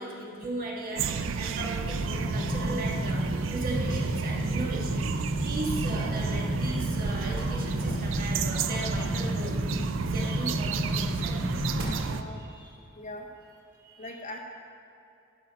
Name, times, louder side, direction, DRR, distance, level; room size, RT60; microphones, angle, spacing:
voice 1, 0.0-9.6 10.0-11.4 12.4-12.7 13.7-14.1, right 2 dB, 45° right, -2 dB, 1.6 m, -37 dB
sound 1, 1.0-12.2, right 5 dB, 65° right, 0.4 m, -32 dB
sound 2, 1.8-11.8, equal, 80° right, 2.0 m, -32 dB
voice 2, 12.0-12.4 12.9-13.3 14.0-14.4, left 1 dB, 35° left, 1 dB, 0.8 m, -40 dB
12.0 x 5.7 x 4.9 m, 2.7 s
head